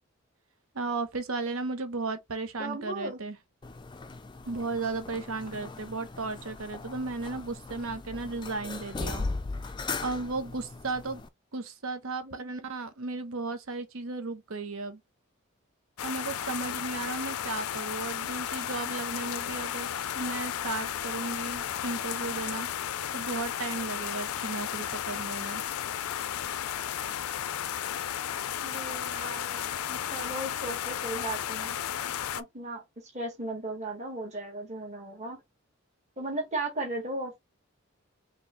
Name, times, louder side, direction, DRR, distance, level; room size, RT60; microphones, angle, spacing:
voice 1, 0.7-3.4 4.4-9.2 10.0-11.2 11.5-15.0 16.0-19.9 20.1-22.7 23.1-25.6, right 3 dB, 75° right, 0.9 m, -35 dB
voice 2, 2.6-3.2 12.2-12.8 28.6-31.8 32.3-35.4 36.2-37.4, right 2 dB, 30° right, 1.6 m, -36 dB
sound 1, 3.6-11.3, left 3 dB, 20° left, 0.3 m, -38 dB
sound 2, 16.0-32.4, left 10 dB, 90° left, 0.4 m, -34 dB
4.4 x 3.1 x 3.1 m
head